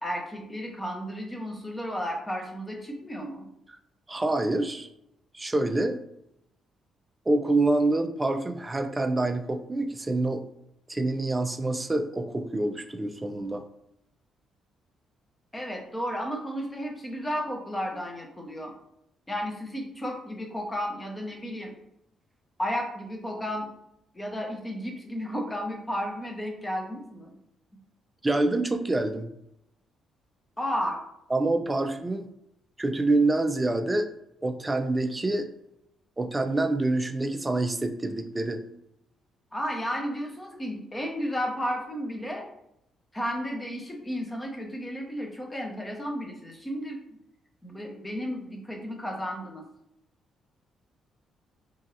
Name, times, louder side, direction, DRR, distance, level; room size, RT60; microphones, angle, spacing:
voice 1, 0.0-3.5 15.5-18.7 19.3-21.7 22.6-23.7 24.1-27.3 30.6-31.0 39.5-42.5 43.1-47.0 47.6-49.6, equal, 15° left, 1 dB, 0.7 m, -33 dB
voice 2, 4.1-4.9 5.3-6.0 7.3-10.4 10.9-13.6 28.2-29.3 31.3-32.3 32.8-34.1 34.4-35.5 36.2-38.6, right 2 dB, 20° right, 5 dB, 0.3 m, -26 dB
3.0 x 2.6 x 2.6 m, 0.80 s
cardioid pair, 90°, 0 cm